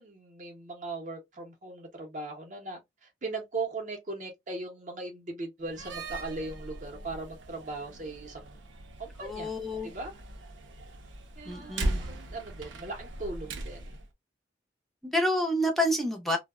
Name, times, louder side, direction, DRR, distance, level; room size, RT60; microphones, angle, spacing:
voice 1, 0.0-8.6 9.0-9.5 9.8-10.1 11.4-14.0, right 3 dB, 40° right, 0.6 m, -39 dB
Slam, 5.6-14.1, right 1 dB, 85° right, 0.5 m, -39 dB
voice 2, 9.2-9.9 11.5-12.0 15.0-16.4, left 1 dB, ahead, 0.4 m, -28 dB
2.7 x 2.0 x 2.3 m
head